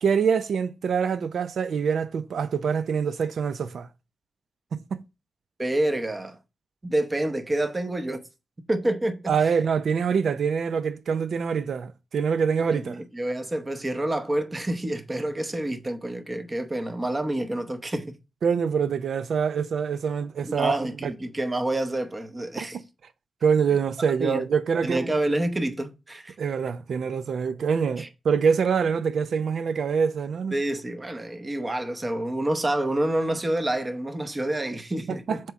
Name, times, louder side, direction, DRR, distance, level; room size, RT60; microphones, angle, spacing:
voice 1, 0.0-3.9 4.7-5.0 9.3-13.0 18.4-20.8 21.0-21.1 22.6-22.8 23.4-25.2 26.4-30.6 35.1-35.4, right 6 dB, 75° right, 0.5 m, -25 dB
voice 2, 5.6-6.4 6.8-8.2 8.7-9.5 12.7-18.1 20.4-22.8 24.2-24.5 24.8-26.3 28.0-28.1 30.5-35.4, right 1 dB, 20° right, 0.8 m, -28 dB
7.5 x 3.0 x 4.6 m
wide cardioid pair, 175°, 0 cm